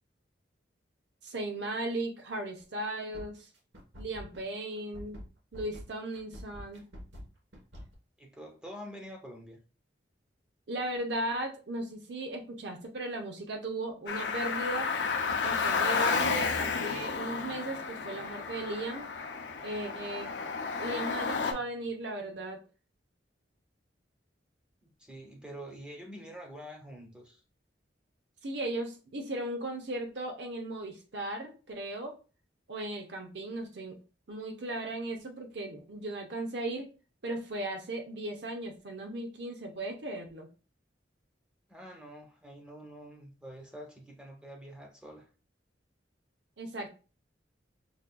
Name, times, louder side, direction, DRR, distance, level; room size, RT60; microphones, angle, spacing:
voice 1, 1.2-3.5 4.0-5.2 5.5-6.9 10.7-14.9 15.4-19.1 19.6-20.4 20.8-22.6 28.4-32.1 32.7-34.0 34.3-36.9 37.2-40.5 46.6-46.9, right 1 dB, 70° right, 0.8 m, -36 dB
sound 1, 2.6-2.8 3.1-7.9, equal, 90° right, 1.1 m, -46 dB
voice 2, 8.2-9.6 24.8-27.4 41.7-45.3, equal, 5° right, 0.8 m, -47 dB
Car, 14.1-21.5, left 5 dB, 70° left, 0.5 m, -32 dB
5.2 x 2.4 x 2.3 m
head